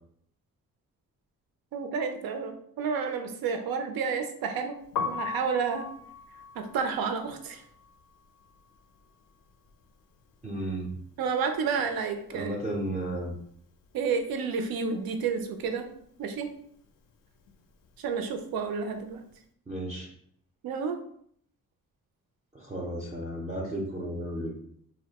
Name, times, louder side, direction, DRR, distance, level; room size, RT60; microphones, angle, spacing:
voice 1, 1.7-4.8 5.0-5.9 6.6-7.6 11.2-12.6 13.9-15.9 16.2-16.5 18.0-19.2 20.6-21.0, right 5 dB, 80° right, 6 dB, 0.5 m, -30 dB
Piano, 4.8-10.8 11.0-12.6 12.9-19.3, left 5 dB, 70° left, 0.5 m, -40 dB
voice 2, 10.4-10.9 12.3-13.3 19.7-20.1 22.5-24.5, right 1 dB, 20° right, -2 dB, 0.5 m, -33 dB
2.6 x 2.1 x 2.8 m, 0.65 s
cardioid pair, 90°, 35 cm